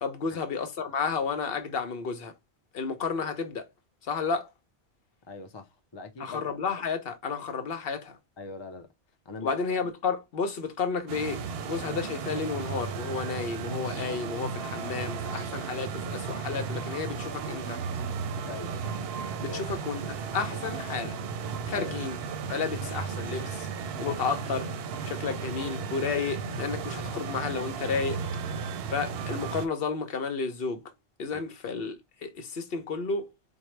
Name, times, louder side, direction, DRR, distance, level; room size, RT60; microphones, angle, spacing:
voice 1, 0.0-2.3 2.7-3.7 4.1-4.5 6.2-8.2 9.4-17.8 19.4-21.1 21.6-22.2 22.5-23.7 24.0-24.7 25.0-28.2 28.9-30.8 31.2-31.9 32.2-33.3, left 5 dB, 60° left, 0.9 m, -32 dB
voice 2, 5.3-6.4 8.4-8.9 9.3-9.5 18.4-18.8 19.5-19.8 21.7-22.0 31.3-31.4, left 3 dB, 35° left, 0.4 m, -41 dB
sound 1, 11.1-29.7, right 5 dB, 65° right, 0.7 m, -34 dB
4.5 x 2.1 x 3.0 m
omnidirectional pair, 1.1 m